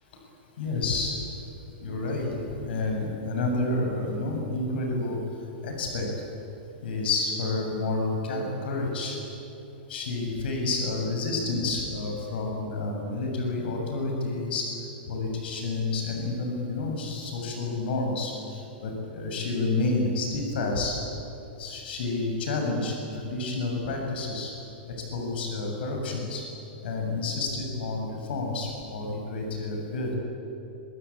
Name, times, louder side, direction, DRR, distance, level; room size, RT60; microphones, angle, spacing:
voice 1, 0.6-1.2 1.8-5.2 5.6-6.1 6.8-9.2 9.9-14.7 15.1-21.0 21.6-24.5 25.1-26.4 26.8-30.1, left 3 dB, 70° left, 1 dB, 7.5 m, -29 dB
25.5 x 23.5 x 8.8 m, 2.9 s
hypercardioid pair, 145°, 6 cm